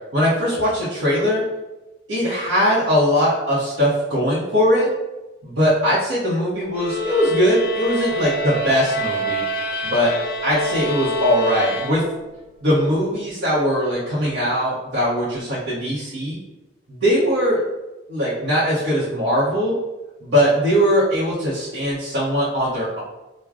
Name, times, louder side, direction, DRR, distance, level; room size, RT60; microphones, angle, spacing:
voice 1, 0.1-1.4 2.1-4.9 5.4-9.5 9.8-10.1 10.4-12.0 12.6-16.4 16.9-17.6 18.1-19.8 20.2-23.0, equal, 90° right, -10 dB, 0.9 m, -20 dB
sound 1, 6.7-12.4, equal, 50° left, 0.3 m, -27 dB
4.8 x 2.2 x 2.4 m, 1.0 s
head